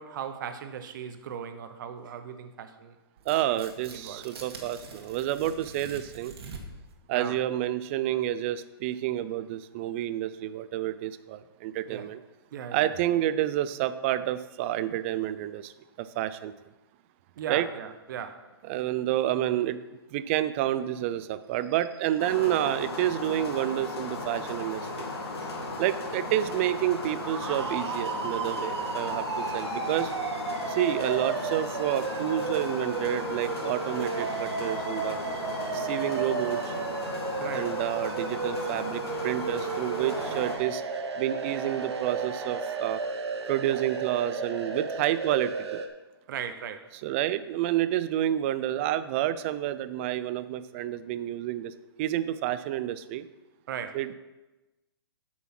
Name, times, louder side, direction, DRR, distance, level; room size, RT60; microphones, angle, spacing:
voice 1, 0.0-2.9 3.5-4.2 7.1-7.4 11.9-12.1 12.5-12.9 17.4-18.5 37.4-37.7 46.3-46.9 53.7-54.0, right 8 dB, 50° right, 9 dB, 0.9 m, -38 dB
Tearing, 3.2-6.9, right 4 dB, 65° right, 1.9 m, -45 dB
voice 2, 3.3-6.3 7.1-12.2 12.7-15.7 16.0-16.5 17.5-17.7 18.7-19.8 20.1-25.1 25.8-30.1 30.7-35.2 35.7-36.7 37.5-40.8 41.2-43.0 43.5-45.8 47.0-51.7 52.0-53.3 53.9-54.1, right 12 dB, 30° right, 14 dB, 0.4 m, -29 dB
sound 1, 22.2-40.6, left 3 dB, 70° left, 2.3 m, -36 dB
sound 2, 26.8-45.9, right 5 dB, 80° right, 1.2 m, -33 dB
9.2 x 6.3 x 6.0 m, 1.1 s
hypercardioid pair, 155°, 14 cm